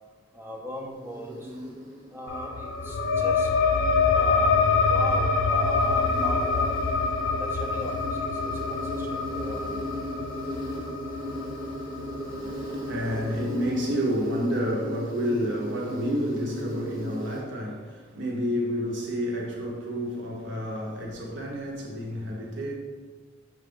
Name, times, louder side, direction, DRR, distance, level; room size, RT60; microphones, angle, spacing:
voice 1, 0.3-1.5 2.1-3.5 4.1-6.8 7.2-9.9, right 1 dB, 10° right, 0.5 m, -38 dB
Insect, 0.7-17.4, equal, 35° right, 1.0 m, -37 dB
sound 1, 2.3-13.4, left 4 dB, 70° left, 0.4 m, -26 dB
voice 2, 12.3-22.7, equal, 60° right, 0.7 m, -30 dB
5.8 x 2.4 x 3.5 m
head